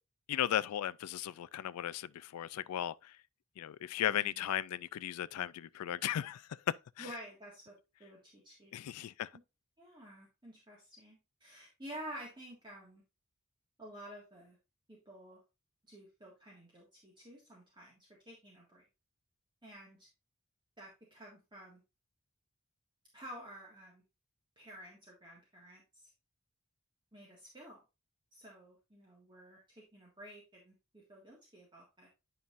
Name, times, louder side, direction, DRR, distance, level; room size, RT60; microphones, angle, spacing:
voice 1, 0.3-3.1 3.6-7.0 8.7-9.3, left 11 dB, 90° left, 0.3 m, -36 dB
voice 2, 4.1-4.4 7.0-8.7 9.8-13.0 13.8-14.6 14.9-15.4 15.9-18.8 19.6-20.1 20.8-21.8 23.1-24.0 24.6-26.1 27.1-27.8 28.3-32.1, right 1 dB, 20° right, 1.7 m, -51 dB
9.4 x 5.5 x 2.5 m
head